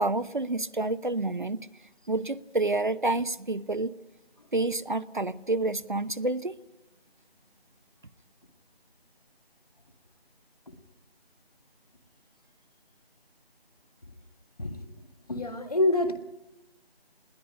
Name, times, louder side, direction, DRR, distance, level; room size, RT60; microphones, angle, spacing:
voice 1, 0.0-1.6 2.1-3.9 4.5-6.5, right 2 dB, 50° right, 13 dB, 0.9 m, -28 dB
voice 2, 15.3-16.1, left 2 dB, 35° left, 7 dB, 2.1 m, -26 dB
21.0 x 18.0 x 10.0 m, 0.97 s
figure-of-eight pair, 180°, 31 cm